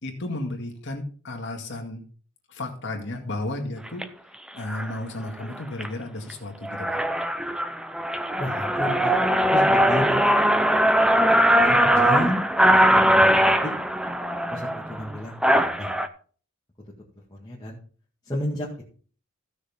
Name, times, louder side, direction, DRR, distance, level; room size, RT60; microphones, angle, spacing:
voice 1, 0.0-2.0 2.5-4.1 4.5-7.0 11.6-12.2, left 1 dB, 55° left, 2 dB, 2.1 m, -33 dB
sound 1, 3.9-4.0 4.7-4.9 5.4-5.9 6.3-6.4 6.6-16.1, equal, 5° right, 0.5 m, -20 dB
voice 2, 8.4-9.1 9.5-10.3 11.5-12.4 12.8-13.7 14.5-15.9 17.3-17.8 18.2-18.7, left 1 dB, 20° left, -5 dB, 1.7 m, -32 dB
15.0 x 6.4 x 3.6 m, 0.43 s
head